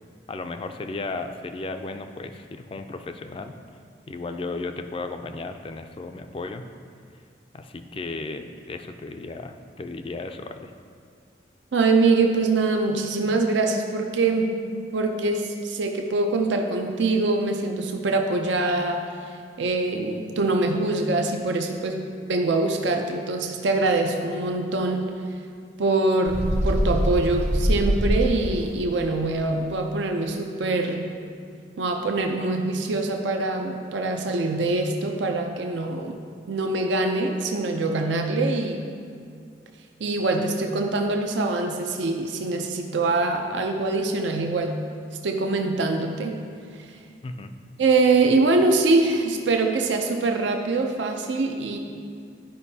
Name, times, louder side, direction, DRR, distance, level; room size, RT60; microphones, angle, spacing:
voice 1, 0.3-3.5 4.1-6.7 7.5-10.7 47.2-47.5, left 3 dB, 30° left, 7 dB, 0.3 m, -34 dB
voice 2, 11.7-14.6 14.9-19.0 19.6-25.2 25.8-31.1 31.8-36.2 36.5-38.8 40.0-44.8 45.2-46.4 47.8-51.8, right 3 dB, 80° right, 3 dB, 0.5 m, -24 dB
Bird, 26.3-28.7, equal, 40° right, 0.8 m, -23 dB
11.0 x 5.2 x 2.7 m, 2.3 s
head